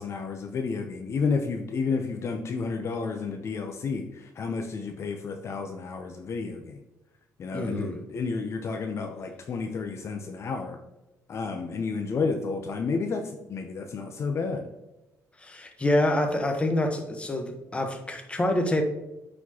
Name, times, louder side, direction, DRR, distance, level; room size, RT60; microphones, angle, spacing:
voice 1, 0.0-6.8 7.4-10.8 11.3-14.7, left 4 dB, 45° left, 4 dB, 0.6 m, -31 dB
voice 2, 7.5-8.0 15.4-18.8, left 1 dB, 20° left, 5 dB, 1.1 m, -26 dB
9.2 x 4.3 x 2.9 m, 0.99 s
cardioid pair, 105°, 6 cm